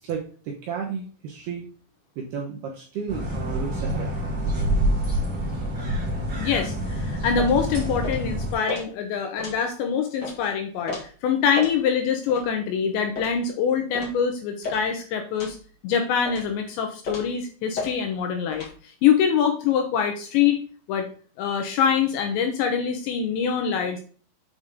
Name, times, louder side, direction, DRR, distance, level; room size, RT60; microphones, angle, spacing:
voice 1, 0.0-1.7 2.2-4.2, right 6 dB, 75° right, -1 dB, 2.4 m, -32 dB
sound 1, 3.1-8.5, right 1 dB, 25° right, 2.7 m, -27 dB
voice 2, 6.4-15.6 15.8-20.6 20.9-21.1 21.4-24.0, left 7 dB, 75° left, 4 dB, 2.7 m, -24 dB
sound 2, 7.4-7.6 8.0-8.2 8.7-8.8 9.4-9.6 10.2-10.4 10.9-11.0 11.5-11.8 12.3-12.4 13.1-13.4 13.9-14.2 14.6-14.8 15.4-15.6 16.2-16.5 17.0-17.3 17.7-17.9 18.5-18.7, left 3 dB, 60° left, 1.0 m, -33 dB
8.2 x 5.1 x 3.7 m, 0.41 s
omnidirectional pair, 5.9 m